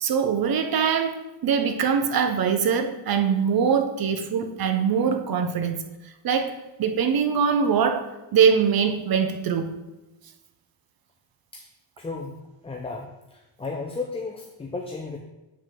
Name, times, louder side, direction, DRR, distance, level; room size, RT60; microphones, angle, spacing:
voice 1, 0.0-5.8 6.2-6.5 6.8-8.1 8.3-9.8, right 6 dB, 45° right, 8 dB, 0.7 m, -22 dB
voice 2, 12.0-12.4 12.6-15.2, left 3 dB, 10° left, 1 dB, 0.5 m, -34 dB
7.3 x 4.6 x 3.7 m, 1.0 s
cardioid pair, 115°, 50 cm